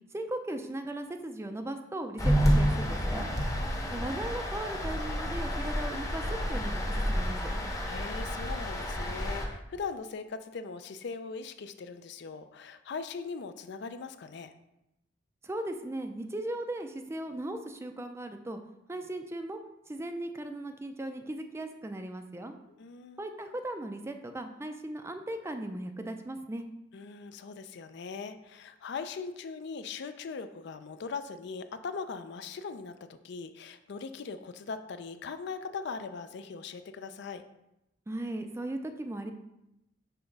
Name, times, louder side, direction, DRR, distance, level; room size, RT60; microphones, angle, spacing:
voice 1, 0.1-3.3 3.9-7.5 15.4-18.6 18.9-19.6 19.9-22.5 23.2-26.6 38.1-39.3, right 1 dB, 15° right, 7 dB, 0.4 m, -37 dB
sound 1, 2.2-9.5, equal, 15° left, 0.8 m, -29 dB
voice 2, 3.5-4.0 7.8-14.5 22.8-23.2 26.9-37.4, left 5 dB, 60° left, 10 dB, 0.4 m, -40 dB
5.8 x 3.4 x 5.2 m, 0.88 s
head